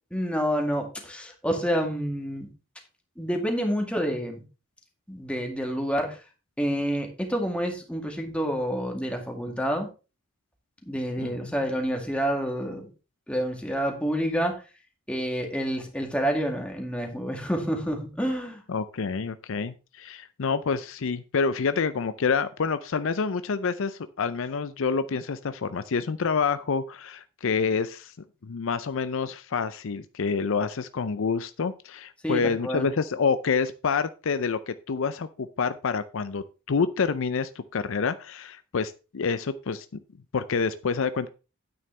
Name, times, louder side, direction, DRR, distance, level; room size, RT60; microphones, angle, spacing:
voice 1, 0.1-2.5 3.2-4.4 5.1-6.2 6.6-9.9 10.9-12.9 13.3-14.6 15.1-18.6 32.2-32.9, equal, 5° left, 2 dB, 2.0 m, -28 dB
voice 2, 11.2-11.5 18.7-28.1 28.4-39.9 40.3-41.3, left 5 dB, 65° left, 13 dB, 0.5 m, -28 dB
9.5 x 8.9 x 3.3 m, 0.31 s
head